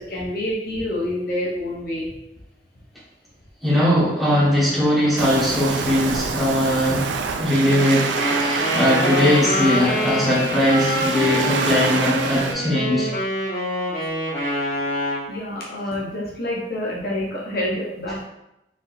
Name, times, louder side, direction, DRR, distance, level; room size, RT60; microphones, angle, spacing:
voice 1, 0.0-2.2 15.3-18.2, left 1 dB, 55° left, -4 dB, 0.9 m, -27 dB
voice 2, 3.6-13.2, equal, ahead, -9 dB, 1.4 m, -20 dB
Waves surf, 5.2-12.5, right 5 dB, 85° right, 0.4 m, -27 dB
Wind instrument woodwind instrument, 8.1-15.3, left 1 dB, 35° left, 1.5 m, -25 dB
4.4 x 3.8 x 2.6 m, 0.88 s
head